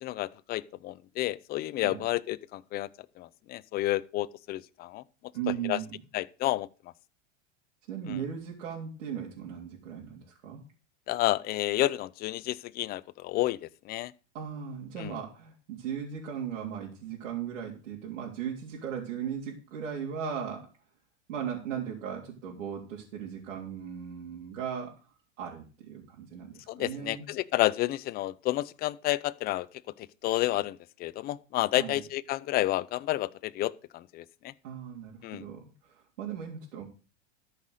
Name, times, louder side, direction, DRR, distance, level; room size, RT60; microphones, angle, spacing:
voice 1, 0.0-2.9 3.2-5.0 5.6-5.8 6.1-6.7 8.1-8.2 11.1-14.1 15.0-15.1 26.7-29.7 30.2-34.5 35.2-35.4, left 16 dB, 25° left, 0.5 m, -30 dB
voice 2, 5.3-6.0 7.9-10.6 14.3-20.7 21.3-24.9 25.4-27.3 31.7-32.0 34.6-36.9, right 8 dB, 75° right, 3.3 m, -37 dB
13.0 x 5.8 x 6.5 m
supercardioid pair, 135°, 38 cm